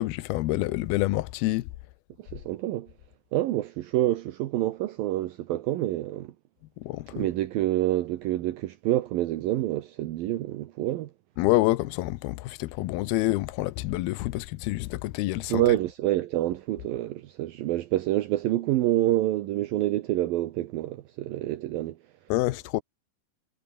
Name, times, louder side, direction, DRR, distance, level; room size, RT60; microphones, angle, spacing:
voice 1, 0.0-1.7 6.8-7.3 11.4-15.6 22.3-22.8, left 18 dB, 80° left, 2.2 m, -27 dB
voice 2, 2.3-2.9 3.3-6.3 7.1-11.1 15.5-22.0, right 15 dB, 80° right, 2.1 m, -27 dB
omnidirectional pair, 5.5 m